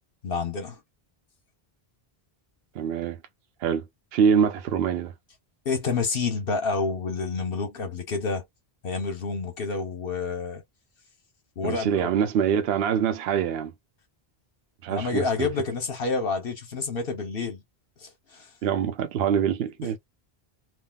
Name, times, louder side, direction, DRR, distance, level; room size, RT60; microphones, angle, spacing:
voice 1, 0.2-0.8 5.6-8.4 8.8-10.6 11.6-12.1 14.9-17.6 18.0-18.5 19.8-20.0, left 4 dB, 70° left, 1.1 m, -29 dB
voice 2, 2.7-3.2 3.6-3.8 4.1-5.1 11.6-13.7 14.8-15.5 18.6-20.0, right 8 dB, 75° right, 0.8 m, -24 dB
3.5 x 2.3 x 2.2 m
omnidirectional pair, 1.0 m